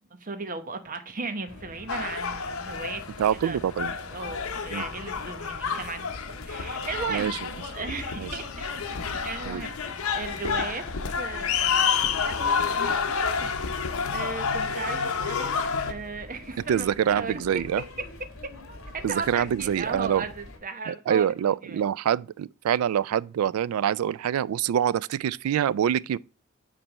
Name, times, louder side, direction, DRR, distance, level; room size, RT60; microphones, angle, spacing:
voice 1, 0.2-3.0 3.3-3.6 4.1-7.3 7.7-10.9 11.2-13.5 14.1-15.5 15.9-17.8 18.4-18.5 18.9-21.8, right 4 dB, 40° right, 0.9 m, -36 dB
sound 1, 1.5-20.6, left 1 dB, 65° left, 1.9 m, -45 dB
sound 2, 1.9-15.9, left 6 dB, 85° left, 0.9 m, -29 dB
voice 2, 3.2-3.9 4.7-4.8 7.1-7.4 8.2-8.3 9.5-9.6 16.7-17.8 19.0-20.2 20.9-26.2, right 9 dB, 85° right, 0.3 m, -25 dB
8.7 x 3.3 x 5.3 m
head